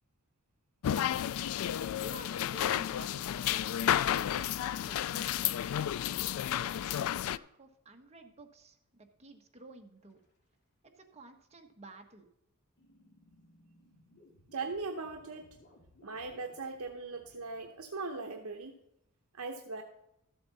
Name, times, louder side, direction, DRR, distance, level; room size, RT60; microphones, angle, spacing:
sound 1, 0.8-7.4, left 10 dB, 65° left, 0.3 m, -32 dB
voice 1, 2.0-3.2 3.5-3.7 3.9-5.8 6.1-7.0 7.2-10.2 11.0-12.3, right 2 dB, 30° right, 3 dB, 1.2 m, -53 dB
sound 2, 10.0-10.4 12.8-17.8, left 1 dB, 50° left, 2.6 m, -62 dB
voice 2, 14.5-15.5 16.0-18.8 19.3-19.8, right 3 dB, 70° right, 4 dB, 0.9 m, -39 dB
13.5 x 7.7 x 4.0 m, 0.83 s
head